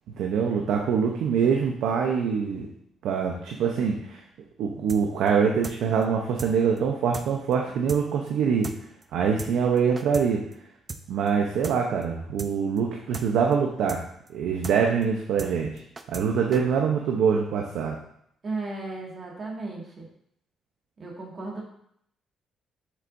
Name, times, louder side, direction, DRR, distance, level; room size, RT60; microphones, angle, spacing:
voice 1, 0.1-2.7 3.0-4.2 4.6-8.7 9.1-10.4 11.1-14.0 14.3-15.8 16.1-18.0, right 6 dB, 80° right, 1 dB, 0.8 m, -24 dB
sound 1, 4.9-5.0 5.3-5.4 5.6-5.8 6.0-6.1 6.4-6.5 6.8-6.9 7.1-7.3 7.5-7.6 7.9-8.0 8.3-8.4 8.6-8.8 9.0-9.1 9.4-9.5 9.8-10.3 10.5-10.6 10.9-11.0 11.3-11.4 11.6-11.8 12.0-12.1 12.4-12.5 12.8-12.9 13.1-13.3 13.5-13.6 13.9-14.0 14.3-14.4 14.6-14.8 15.0-15.1 15.4-15.5 15.8-16.3 16.5-16.6, right 3 dB, 30° right, 0.6 m, -37 dB
voice 2, 18.4-20.1 21.0-21.7, right 3 dB, 45° right, -2 dB, 2.0 m, -35 dB
7.7 x 6.4 x 2.6 m, 0.71 s
cardioid pair, 90°, 0 cm